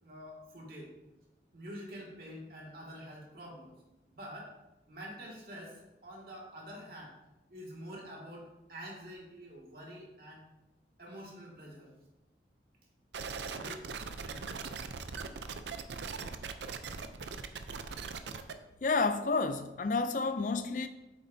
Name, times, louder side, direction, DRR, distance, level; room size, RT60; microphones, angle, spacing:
voice 1, 0.0-0.9 1.5-3.7 4.1-4.5 4.9-7.1 7.5-10.5 11.0-11.9 13.5-13.8 14.2-14.4 15.2-15.4, equal, 55° right, 2.2 m, -47 dB
sound 1, 13.1-18.5, right 5 dB, 80° right, 0.5 m, -40 dB
voice 2, 18.8-20.9, left 4 dB, 45° left, 0.4 m, -30 dB
8.5 x 7.1 x 2.7 m
head